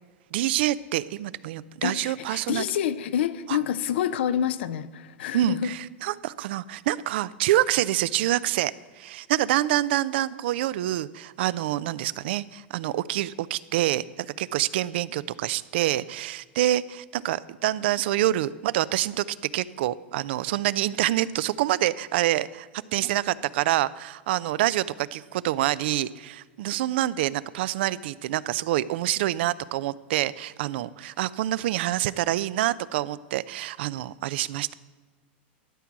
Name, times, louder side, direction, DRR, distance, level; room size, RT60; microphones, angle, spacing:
voice 1, 0.3-2.6 5.3-34.7, right 14 dB, 70° right, 0.4 m, -26 dB
voice 2, 1.8-5.7, left 9 dB, 80° left, 0.5 m, -27 dB
12.5 x 4.6 x 7.3 m
hypercardioid pair, 120°, 6 cm